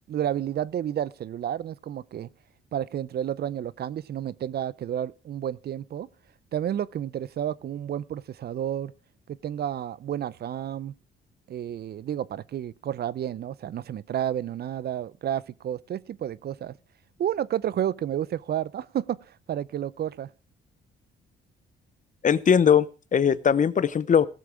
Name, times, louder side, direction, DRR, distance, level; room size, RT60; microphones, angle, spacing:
voice 1, 0.1-2.3 2.7-6.1 6.5-8.9 9.3-10.9 11.5-16.8 17.2-20.3, right 10 dB, 55° right, 0.5 m, -31 dB
voice 2, 22.2-24.3, left 7 dB, 40° left, 0.8 m, -20 dB
18.0 x 7.4 x 4.7 m
cardioid pair, 90°, 20 cm